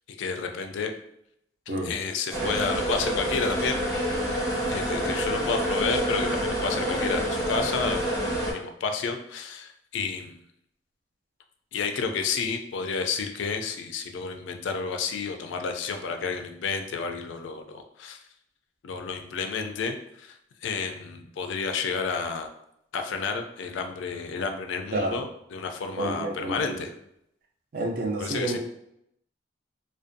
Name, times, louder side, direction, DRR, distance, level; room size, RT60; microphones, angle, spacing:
voice 1, 0.1-0.9 1.7-3.9 4.3-10.4 11.7-18.2 18.8-22.5 22.9-26.9 28.2-28.6, left 5 dB, 85° left, 5 dB, 0.3 m, -31 dB
sound 1, 2.3-8.5, equal, 15° left, 0.6 m, -27 dB
voice 2, 26.0-26.8 27.7-28.6, right 2 dB, 50° right, 1 dB, 0.4 m, -29 dB
2.5 x 2.2 x 2.5 m, 0.77 s
head